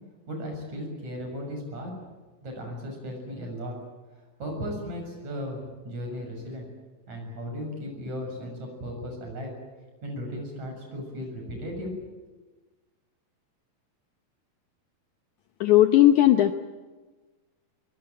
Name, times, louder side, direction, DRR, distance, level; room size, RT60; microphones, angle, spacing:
voice 1, 0.3-1.9 2.4-3.8 4.4-5.6 5.8-6.7 7.1-9.5 10.0-11.9, equal, 50° right, 2 dB, 8.3 m, -36 dB
voice 2, 15.6-16.5, left 13 dB, 70° left, 7 dB, 2.0 m, -17 dB
23.5 x 23.0 x 9.3 m, 1.3 s
omnidirectional pair, 4.2 m